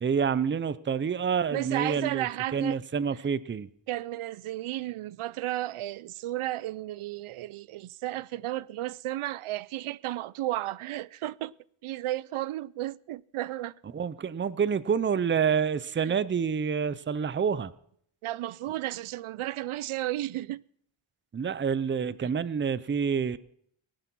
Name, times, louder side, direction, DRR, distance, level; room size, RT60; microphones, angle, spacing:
voice 1, 0.0-2.3 2.5-3.7 13.9-17.7 21.3-23.4, right 6 dB, 25° right, 0.5 m, -28 dB
voice 2, 1.5-2.8 3.9-11.5 11.8-13.7 16.0-16.2 18.2-20.6 22.2-22.3, right 15 dB, 90° right, 0.6 m, -33 dB
18.5 x 11.5 x 6.0 m
wide cardioid pair, 160°, 48 cm